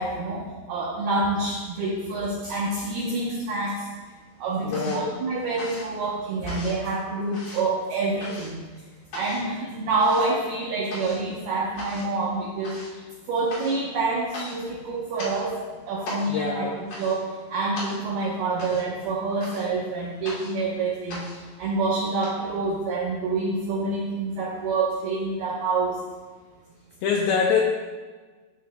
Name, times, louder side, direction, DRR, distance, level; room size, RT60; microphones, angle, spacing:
voice 1, 0.0-3.9 4.4-8.6 9.1-13.0 13.3-16.7 17.0-26.0, right 3 dB, 85° right, -4 dB, 2.2 m, -27 dB
sound 1, 2.9-3.7 4.0-22.3, left 1 dB, 50° left, 3.6 m, -41 dB
voice 2, 4.6-5.2 16.3-16.8 27.0-27.6, left 6 dB, 90° left, 0 dB, 2.5 m, -24 dB
13.5 x 6.4 x 2.2 m, 1.4 s
omnidirectional pair, 5.8 m